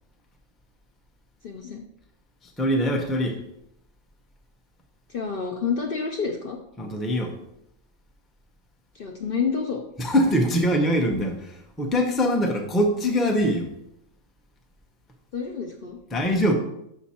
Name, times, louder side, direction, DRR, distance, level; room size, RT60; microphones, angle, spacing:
voice 1, 1.4-1.8 5.1-6.6 8.9-9.8 15.3-16.0, left 5 dB, 55° left, 2 dB, 0.7 m, -28 dB
voice 2, 2.6-3.4 6.8-7.3 10.0-11.4 11.8-13.7 16.1-16.5, equal, ahead, 2 dB, 0.5 m, -22 dB
6.0 x 5.9 x 4.2 m, 0.80 s
omnidirectional pair, 1.5 m